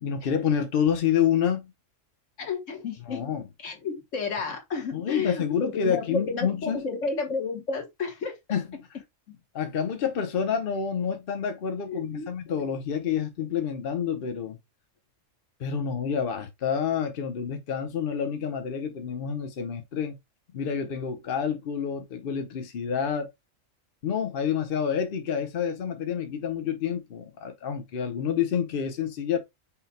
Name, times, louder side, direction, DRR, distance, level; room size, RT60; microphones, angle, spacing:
voice 1, 0.0-1.7 3.1-3.4 4.9-6.8 8.5-8.7 9.5-14.6 15.6-20.2 20.5-23.3 24.0-29.4, left 7 dB, 50° left, 0.9 m, -28 dB
voice 2, 2.4-3.2 3.6-8.3 11.9-12.3, left 4 dB, 75° left, 1.6 m, -31 dB
5.7 x 2.2 x 4.1 m
omnidirectional pair, 1.3 m